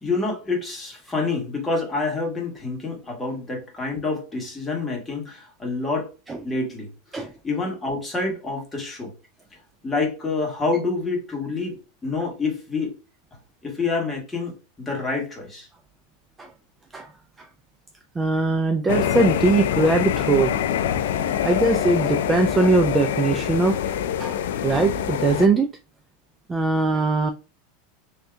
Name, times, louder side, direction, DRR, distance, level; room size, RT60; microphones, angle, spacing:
voice 1, 0.0-6.1 6.4-6.9 7.2-9.1 9.8-13.0 13.6-15.7, left 3 dB, 10° left, 1.4 m, -27 dB
voice 2, 18.2-20.5 21.4-23.8 24.2-25.7 26.5-27.3, right 3 dB, 15° right, 0.3 m, -21 dB
sound 1, 18.9-25.5, left 9 dB, 85° left, 0.4 m, -25 dB
3.6 x 2.7 x 3.3 m
supercardioid pair, 150°, 0 cm